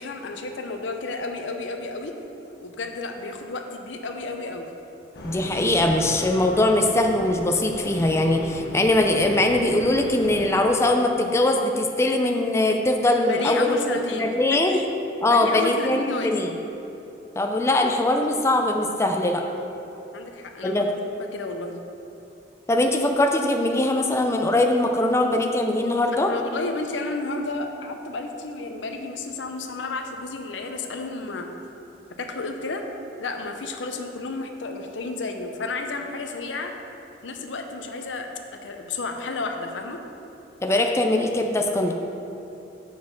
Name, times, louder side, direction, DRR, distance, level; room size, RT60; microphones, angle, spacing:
voice 1, 0.0-2.1 2.6-4.7 13.3-14.8 15.2-16.4 20.1-21.8 26.2-31.5 32.2-32.9 33.2-36.7 37.2-40.0, left 3 dB, 85° left, 4 dB, 0.7 m, -32 dB
sound 1, 5.1-10.4, equal, 60° left, 1.0 m, -36 dB
voice 2, 5.2-14.8 15.2-16.5 17.4-19.4 20.6-20.9 22.7-26.3 40.6-41.9, left 1 dB, 15° left, 3 dB, 0.4 m, -21 dB
7.2 x 4.5 x 5.8 m, 2.9 s
head